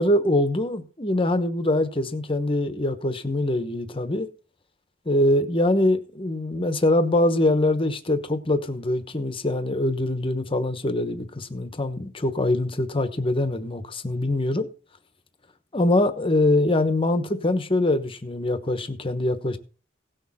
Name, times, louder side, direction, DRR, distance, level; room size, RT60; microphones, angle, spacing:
voice 1, 0.0-4.3 5.0-14.7 15.7-19.6, left 1 dB, 30° left, 1.1 m, -23 dB
17.0 x 6.5 x 4.2 m
head